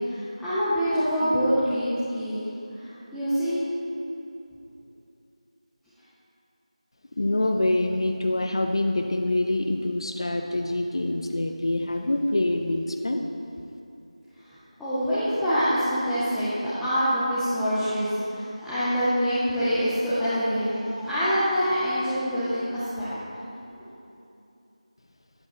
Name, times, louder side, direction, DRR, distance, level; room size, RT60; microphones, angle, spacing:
voice 1, 0.0-2.4 2.7-3.6 14.4-23.1 23.8-23.9, equal, ahead, -17 dB, 0.4 m, -25 dB
voice 2, 7.1-13.2, left 1 dB, 45° left, 4 dB, 0.6 m, -25 dB
11.5 x 8.2 x 4.1 m, 2.8 s
figure-of-eight pair, 175°, 4 cm